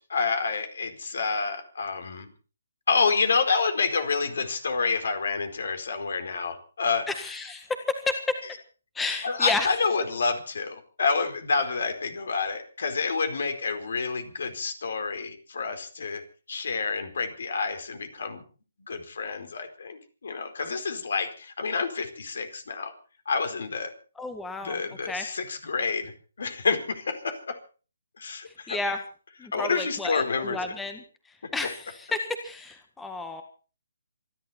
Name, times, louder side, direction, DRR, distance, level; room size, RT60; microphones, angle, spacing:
voice 1, 0.1-2.3 2.9-7.1 9.2-16.2 16.5-18.4 18.9-22.9 23.3-23.9 24.6-26.1 26.4-27.6 28.2-28.8 29.5-30.8, left 4 dB, 65° left, 8 dB, 4.4 m, -28 dB
voice 2, 7.1-7.7 9.0-9.7 24.2-24.8 25.1-25.3 28.7-29.0 29.4-31.0 31.5-33.4, left 3 dB, 5° left, 7 dB, 1.7 m, -32 dB
27.0 x 11.5 x 4.4 m, 0.37 s
hypercardioid pair, 150°, 0 cm